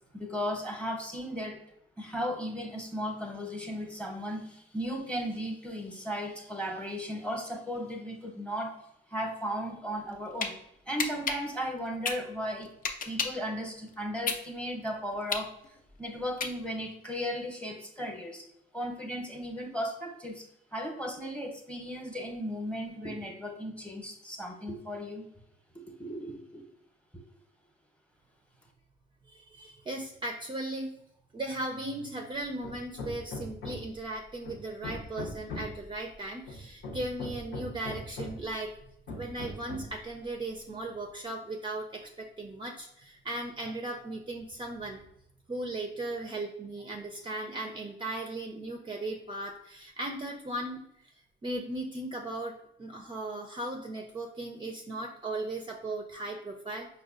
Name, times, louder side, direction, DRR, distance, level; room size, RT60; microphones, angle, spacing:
voice 1, 0.1-1.6 2.0-8.7 9.1-10.5 10.9-12.7 13.1-15.5 16.0-18.4 18.7-20.4 20.7-25.3 26.0-26.6, equal, 5° left, 2 dB, 0.8 m, -36 dB
sound 1, 10.0-10.5 11.0-13.5 13.9-16.9, left 5 dB, 45° left, 0.5 m, -33 dB
voice 2, 29.3-31.0 31.3-38.7 39.1-45.0 45.5-51.1 51.4-56.9, right 2 dB, 25° right, 2 dB, 0.4 m, -37 dB
Hammer, 32.6-34.0 34.5-35.9 36.5-38.5 39.1-40.0, left 2 dB, 90° left, 0.9 m, -40 dB
5.0 x 2.2 x 2.4 m, 0.76 s
cardioid pair, 90°, 20 cm